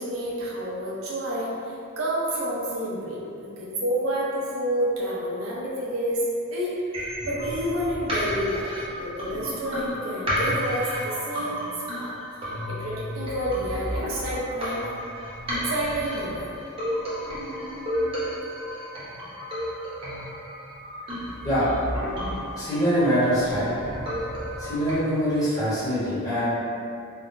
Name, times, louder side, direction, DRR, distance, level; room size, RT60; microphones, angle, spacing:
voice 1, 0.0-6.8 7.2-8.7 9.0-14.9 15.5-16.5, equal, 80° right, -6 dB, 0.7 m, -29 dB
sound 1, 6.9-24.9, equal, 25° right, 0.6 m, -32 dB
voice 2, 22.5-23.7 24.6-26.5, equal, 15° left, -13 dB, 0.8 m, -24 dB
3.5 x 2.1 x 2.5 m, 2.5 s
head